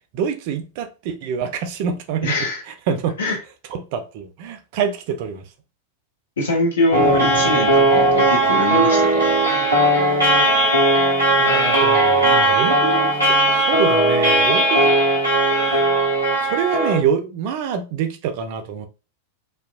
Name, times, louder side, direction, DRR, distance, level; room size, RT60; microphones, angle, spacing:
voice 1, 0.1-2.3 2.9-3.2 3.7-5.4 11.4-14.9 16.4-18.9, right 7 dB, 45° right, 0.4 m, -25 dB
voice 2, 2.2-2.6 3.2-3.4 6.4-9.3, left 2 dB, 65° left, 0.8 m, -22 dB
sound 1, 6.9-17.0, right 1 dB, 90° left, 1.0 m, -17 dB
2.8 x 2.1 x 2.3 m
figure-of-eight pair, 90°, 0 cm